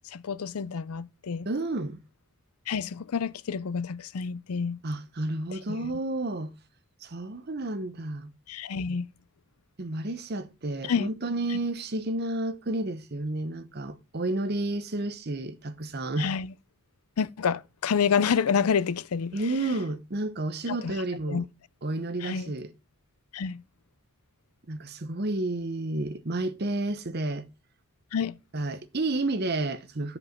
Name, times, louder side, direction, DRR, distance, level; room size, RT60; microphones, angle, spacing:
voice 1, 0.0-1.5 2.7-4.8 5.5-5.9 8.5-9.1 10.8-11.1 11.5-11.6 16.2-16.5 17.2-19.3 19.6-19.8 20.7-20.9 21.3-21.4 22.2-22.5 23.3-23.6 28.1-28.4, left 6 dB, 85° left, 0.5 m, -28 dB
voice 2, 1.4-2.0 4.8-6.5 7.0-8.3 9.8-16.3 19.3-21.5 21.8-22.7 24.7-27.5 28.5-30.2, right 2 dB, 45° right, 0.8 m, -31 dB
7.3 x 5.4 x 6.0 m
head